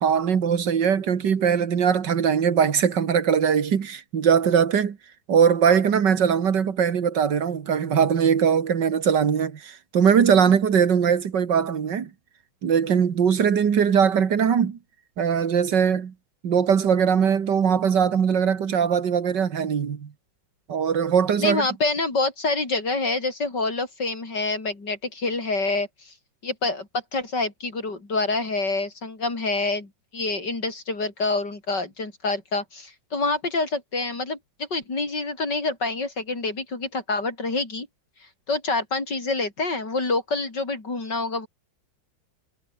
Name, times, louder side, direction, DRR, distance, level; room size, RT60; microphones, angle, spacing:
voice 1, 0.0-5.0 5.3-12.1 12.6-14.8 15.2-16.1 16.4-20.1 20.7-21.7, right 7 dB, 65° right, 2.3 m, -21 dB
voice 2, 21.4-26.1 26.4-37.9 38.5-41.5, left 3 dB, 60° left, 5.8 m, -27 dB
omnidirectional pair, 2.1 m